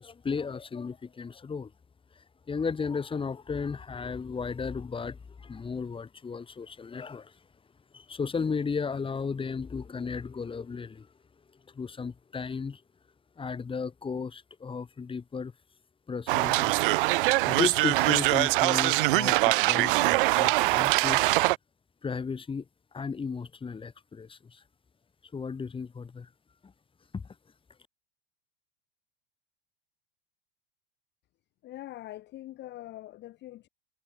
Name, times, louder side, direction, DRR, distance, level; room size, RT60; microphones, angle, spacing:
voice 1, 0.0-1.7 2.5-7.3 7.9-11.1 11.7-12.8 13.4-15.5 16.1-16.8 17.5-21.2 22.0-22.6 22.9-24.6 25.3-26.3 26.6-26.7 27.1-27.2, left 5 dB, 15° left, 2.2 m, -34 dB
sound 1, 16.3-21.6, right 22 dB, 55° right, 0.5 m, -23 dB
voice 2, 31.6-33.7, left 15 dB, 35° left, 1.1 m, -43 dB
hypercardioid pair, 90°, 32 cm